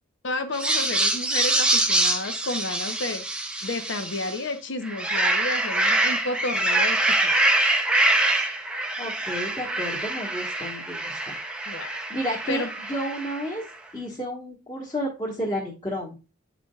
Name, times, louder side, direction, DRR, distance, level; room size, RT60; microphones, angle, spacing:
voice 1, 0.2-3.3 3.6-7.3 11.7-12.0 12.5-12.7, left 2 dB, 65° left, 7 dB, 0.7 m, -31 dB
sound 1, 0.5-4.4 4.8-13.5, right 2 dB, 5° right, 0.5 m, -25 dB
voice 2, 9.0-11.3 12.1-13.6 13.9-16.2, equal, 25° left, -6 dB, 1.3 m, -31 dB
9.5 x 5.0 x 2.3 m, 0.30 s
head